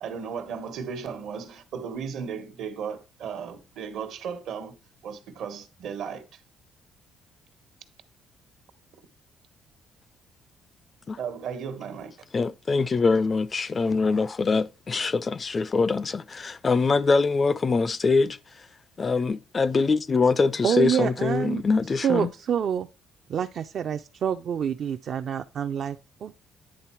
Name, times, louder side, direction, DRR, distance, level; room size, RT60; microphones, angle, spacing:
voice 1, 0.0-4.7 5.0-6.4 11.1-12.1, right 6 dB, 70° right, 1.2 m, -35 dB
voice 2, 12.3-18.7 19.0-22.3, left 4 dB, 25° left, 0.3 m, -24 dB
voice 3, 20.6-21.6 22.0-22.9 23.3-26.4, right 8 dB, 45° right, 0.4 m, -27 dB
9.8 x 3.7 x 4.4 m
cardioid pair, 150°, 0 cm